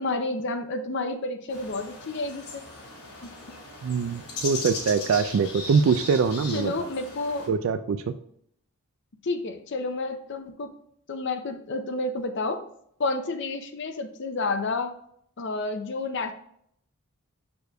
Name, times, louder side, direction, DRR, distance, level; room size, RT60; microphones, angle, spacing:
voice 1, 0.0-2.6 3.2-3.3 6.5-7.5 9.2-10.7 11.1-12.6 13.0-14.9 15.4-16.3, left 3 dB, 50° left, 7 dB, 0.5 m, -30 dB
sound 1, 1.5-7.5, left 3 dB, 85° left, 2.1 m, -38 dB
voice 2, 3.8-6.9 7.5-8.1, right 5 dB, 60° right, 10 dB, 0.3 m, -24 dB
6.9 x 6.4 x 2.3 m, 0.69 s
head